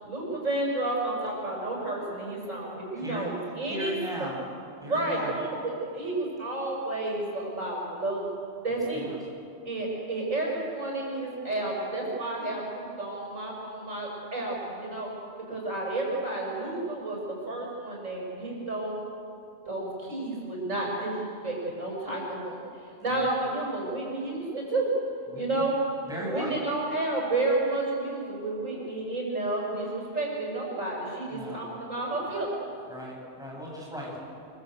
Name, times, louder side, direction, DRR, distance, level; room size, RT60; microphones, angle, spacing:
voice 1, 0.0-4.0 4.8-8.3 8.6-9.1 9.7-15.1 15.5-19.0 19.7-24.9 25.3-25.7 26.2-32.6, right 2 dB, 80° right, -3 dB, 7.2 m, -31 dB
voice 2, 3.0-3.3 3.6-4.4 4.8-5.3 8.7-9.2 23.1-23.3 25.3-25.7 26.1-26.6 31.3-31.6 32.9-34.2, equal, 5° right, -4 dB, 7.6 m, -37 dB
25.5 x 25.5 x 8.1 m, 2.5 s
omnidirectional pair, 1.3 m